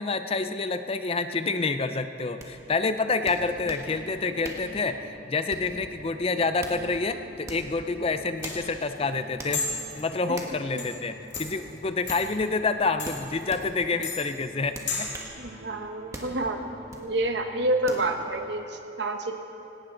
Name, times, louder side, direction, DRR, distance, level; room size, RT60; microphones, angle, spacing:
voice 1, 0.0-9.7 9.9-15.1, left 3 dB, 30° left, 9 dB, 0.5 m, -28 dB
sound 1, 2.4-2.5 3.3-3.9 4.4-4.7 5.5-5.8 6.4-6.8 7.4-7.7 8.4-8.6 9.4-9.6 10.3-10.6 11.3-11.5 12.1-12.2 13.0-13.6 14.7-15.3 16.1-16.3 16.9-17.1 17.9-18.1, right 1 dB, 15° right, 1.5 m, -40 dB
sound 2, 3.0-18.3, right 1 dB, 40° right, 2.6 m, -50 dB
sound 3, 7.8-15.2, left 4 dB, 70° left, 2.4 m, -36 dB
voice 2, 15.4-16.6 16.9-19.3, right 1 dB, 65° right, 5 dB, 1.2 m, -28 dB
18.5 x 17.5 x 3.9 m, 2.8 s
head